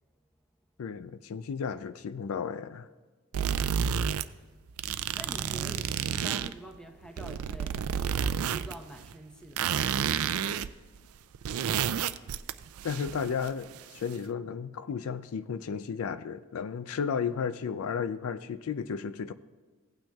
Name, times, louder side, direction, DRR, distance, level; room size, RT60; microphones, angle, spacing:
voice 1, 0.8-2.9 12.8-19.3, left 6 dB, 75° left, 0.4 m, -33 dB
sound 1, 3.3-4.2 4.7-6.5 7.0-8.7 9.0-9.1 9.6-10.7 11.0-11.1 11.3-13.8, right 8 dB, 80° right, 0.4 m, -30 dB
voice 2, 4.8-9.9, right 1 dB, 5° left, 0.8 m, -47 dB
17.0 x 8.9 x 2.3 m
head